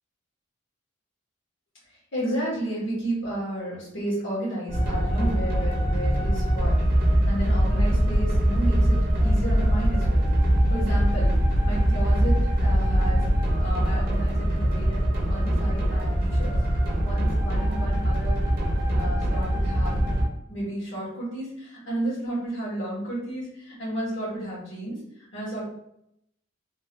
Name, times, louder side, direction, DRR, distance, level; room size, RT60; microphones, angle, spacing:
voice 1, 2.1-6.8 7.3-10.3 10.7-11.3 11.6-13.3 13.6-16.5 17.0-18.4 18.9-20.1 20.5-25.0 25.3-25.6, right 1 dB, 70° left, -7 dB, 1.4 m, -32 dB
sound 1, 4.7-20.3, equal, 45° right, 0.7 m, -22 dB
3.0 x 2.5 x 2.9 m, 0.77 s
head